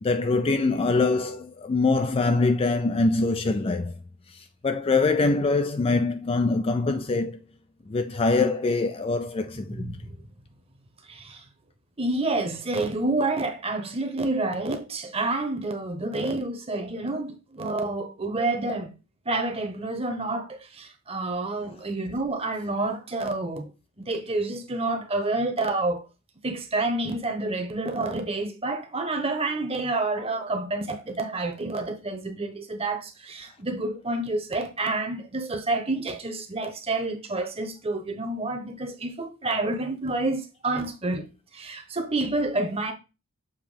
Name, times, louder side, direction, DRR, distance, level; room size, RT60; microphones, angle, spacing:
voice 1, 0.0-4.0 4.3-7.4 7.9-10.0, left 3 dB, 25° left, 0.3 m, -24 dB
voice 2, 9.7-10.2 11.1-11.4 12.0-18.9 19.2-23.7 24.0-26.0 26.4-41.2 41.5-42.9, right 2 dB, 25° right, 1.0 m, -29 dB
7.3 x 2.9 x 5.0 m
head